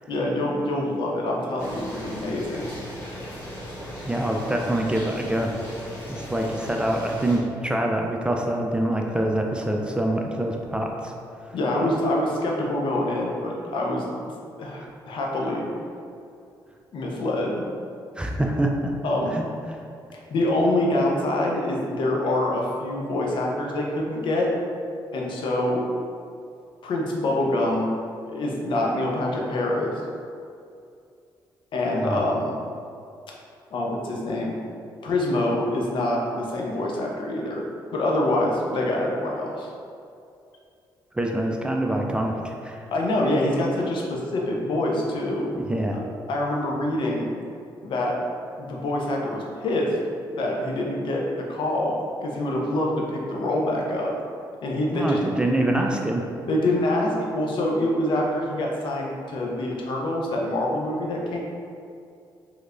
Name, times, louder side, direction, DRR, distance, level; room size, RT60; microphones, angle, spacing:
voice 1, 0.1-2.7 11.5-14.0 14.6-15.7 16.9-17.7 19.0-19.3 20.1-24.5 25.1-25.8 26.8-27.9 28.3-29.9 31.7-32.5 33.7-34.6 35.0-37.6 37.9-39.7 42.9-45.5 46.3-47.3 47.8-48.2 48.6-50.0 50.3-54.1 54.6-55.2 56.5-61.4, left 1 dB, 65° left, -1 dB, 0.6 m, -25 dB
sound 1, 1.6-7.4, equal, 25° left, 1.4 m, -37 dB
voice 2, 3.8-5.5 6.0-11.1 11.5-11.6 11.8-11.9 14.8-14.9 18.2-18.9 19.3-19.8 32.0-32.2 41.1-42.8 45.5-46.0 54.9-56.3, right 1 dB, 10° right, 1 dB, 0.3 m, -25 dB
3.3 x 3.1 x 2.5 m, 2.5 s
cardioid pair, 80°, 9 cm